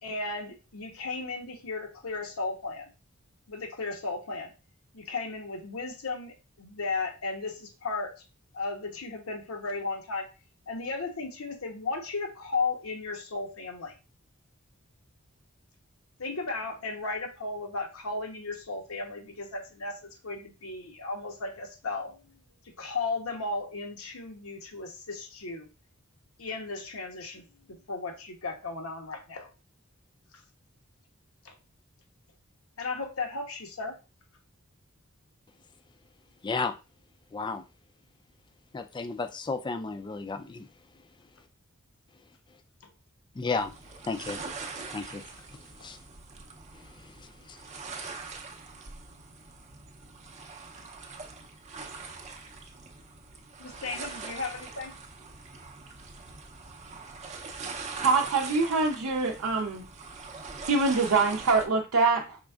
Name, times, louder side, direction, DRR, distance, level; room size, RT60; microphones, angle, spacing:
voice 1, 0.0-2.9 3.5-4.5 4.9-8.1 8.5-10.3 10.7-13.9 16.2-22.4 22.8-25.7 26.4-29.5 31.4-31.6 32.8-34.0 53.6-54.9, left 3 dB, 80° left, 3 dB, 1.0 m, -35 dB
voice 2, 36.4-36.7 37.3-37.6 38.7-40.7 43.3-43.7 44.0-44.4 44.9-45.2 45.8-46.0 47.0-47.6, left 4 dB, 20° left, 8 dB, 0.4 m, -33 dB
sound 1, 43.6-61.7, right 4 dB, 35° right, 0.6 m, -42 dB
voice 3, 58.0-59.8 60.6-62.4, right 4 dB, 75° right, 0 dB, 0.6 m, -24 dB
5.0 x 3.5 x 2.3 m, 0.31 s
head